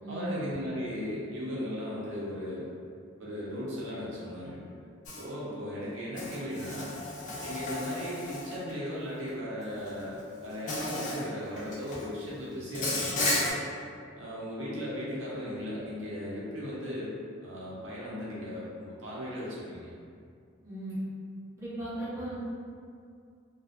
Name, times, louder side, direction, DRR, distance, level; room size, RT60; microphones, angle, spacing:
voice 1, 0.1-2.7 3.2-4.8 5.2-7.0 7.4-13.6 14.2-17.1 17.4-19.9, equal, 80° right, -7 dB, 0.7 m, -37 dB
Insect, 5.1-5.2 6.2-8.7 9.9-10.0 10.7-11.2 11.6-12.0 12.7-13.5, left 2 dB, 40° left, 0.4 m, -33 dB
voice 2, 21.6-22.4, right 1 dB, 15° right, -12 dB, 0.8 m, -37 dB
2.5 x 2.3 x 2.4 m, 2.3 s
head